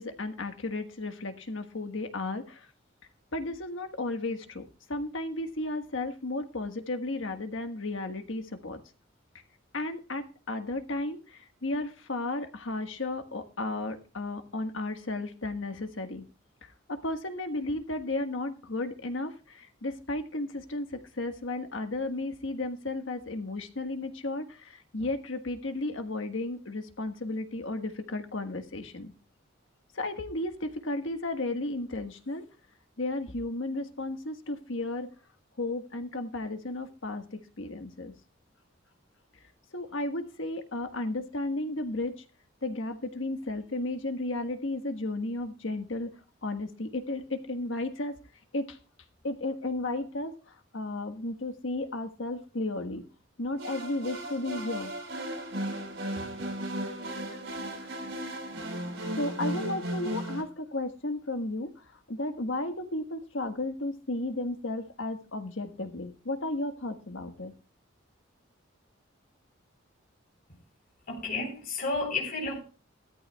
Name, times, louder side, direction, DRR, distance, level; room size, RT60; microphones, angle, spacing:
voice 1, 0.0-2.7 3.3-4.6 4.9-8.8 9.7-16.2 16.9-29.1 29.9-32.4 33.0-35.1 35.6-38.1 39.7-42.1 42.6-46.1 46.4-48.1 48.5-48.8 49.2-50.3 50.7-53.0 53.4-54.9 56.1-56.5 57.8-57.9 59.2-61.7 62.1-67.5, left 2 dB, 80° left, 1.5 m, -34 dB
sound 1, 53.6-60.4, right 1 dB, 85° right, 3.6 m, -35 dB
voice 2, 71.1-72.6, left 3 dB, 50° left, 3.9 m, -31 dB
15.0 x 13.5 x 2.3 m
head